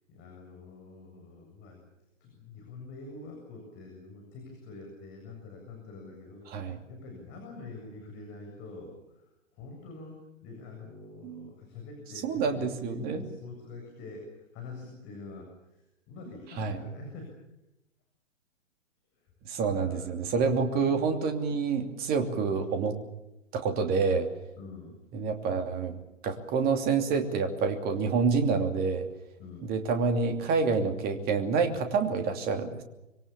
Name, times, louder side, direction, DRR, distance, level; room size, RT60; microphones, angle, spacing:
voice 1, 0.1-1.8 2.2-17.4 19.1-19.3 19.8-21.0 24.6-25.0 29.4-29.7, left 3 dB, 30° left, 1 dB, 7.6 m, -46 dB
voice 2, 12.2-13.2 16.6-16.8 19.5-23.0 23.5-24.3 25.1-29.1 29.7-32.8, right 5 dB, 25° right, 6 dB, 2.9 m, -28 dB
26.0 x 23.5 x 7.2 m, 0.90 s
figure-of-eight pair, 125°, 38 cm